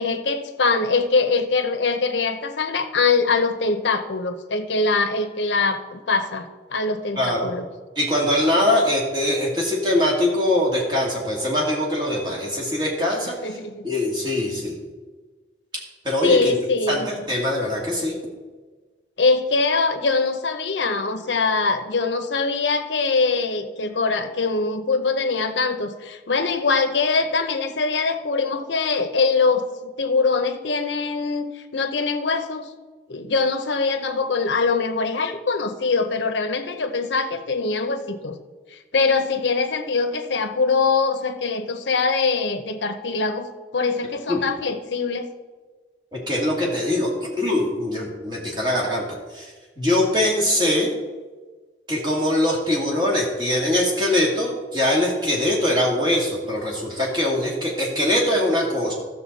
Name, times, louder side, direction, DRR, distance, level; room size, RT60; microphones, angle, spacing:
voice 1, 0.0-7.6 13.4-13.9 16.2-17.1 19.2-32.7 33.1-38.4 38.7-45.3, left 4 dB, 85° left, 7 dB, 0.8 m, -23 dB
voice 2, 7.2-7.5 8.0-13.4 13.8-14.8 16.0-16.5 16.9-18.1 44.3-44.5 46.1-49.1 49.3-49.5 49.8-50.9 51.9-58.9, left 1 dB, 25° right, -3 dB, 2.1 m, -22 dB
13.5 x 6.6 x 4.1 m, 1.3 s
head